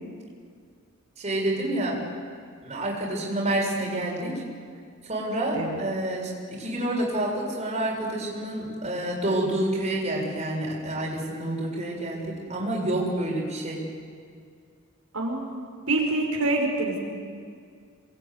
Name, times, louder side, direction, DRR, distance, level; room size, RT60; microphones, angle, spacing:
voice 1, 1.2-2.0 2.6-4.4 5.0-13.8, right 1 dB, 30° right, -2 dB, 7.0 m, -28 dB
voice 2, 15.1-17.0, right 2 dB, 90° right, 0 dB, 5.5 m, -26 dB
28.0 x 21.5 x 9.7 m, 2.1 s
head